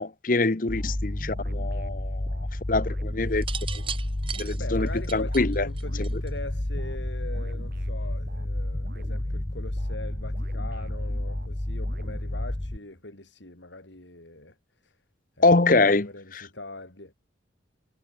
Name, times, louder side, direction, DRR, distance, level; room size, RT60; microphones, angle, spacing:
voice 1, 0.0-2.3 2.7-3.4 4.4-5.7 6.0-6.1 15.4-16.5, left 3 dB, 45° left, 1.0 m, -24 dB
sound 1, 0.7-12.8, left 1 dB, 15° left, 0.5 m, -31 dB
sound 2, 0.8-13.0, right 1 dB, 50° right, 3.3 m, -45 dB
sound 3, 3.3-6.5 7.6-7.9, right 8 dB, 30° right, 1.8 m, -37 dB
voice 2, 4.5-14.6 14.8-14.9 15.4-17.1, left 2 dB, 75° left, 3.9 m, -42 dB
head